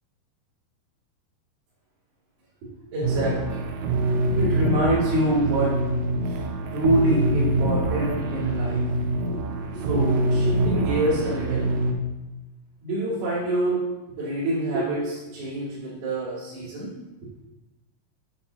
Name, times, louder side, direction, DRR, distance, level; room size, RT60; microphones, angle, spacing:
voice 1, 2.6-3.7 4.4-5.8 6.3-6.4 6.7-8.9 9.2-9.4 9.7-11.7 12.8-13.8 14.2-16.9 17.2-17.3, right 1 dB, 75° right, -13 dB, 4.3 m, -26 dB
sound 1, 3.0-11.9, right 2 dB, 90° right, 2.7 m, -25 dB
10.0 x 5.7 x 2.8 m, 1.0 s
omnidirectional pair, 4.5 m